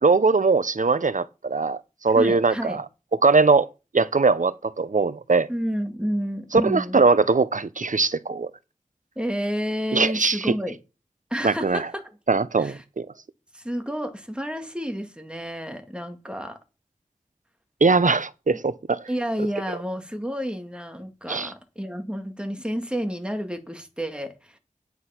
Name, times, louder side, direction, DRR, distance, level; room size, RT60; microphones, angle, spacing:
voice 1, 0.0-2.8 3.2-3.7 3.9-5.5 6.5-8.5 9.9-10.5 11.4-11.9 12.3-13.1 17.8-19.0 21.3-21.5, right 4 dB, 70° right, 0.7 m, -21 dB
voice 2, 2.1-2.8 5.5-7.0 9.2-10.8 11.3-12.2 12.6-12.8 13.5-16.6 19.1-24.6, equal, 5° right, 2.1 m, -30 dB
9.7 x 6.2 x 5.8 m
wide cardioid pair, 40°, 14 cm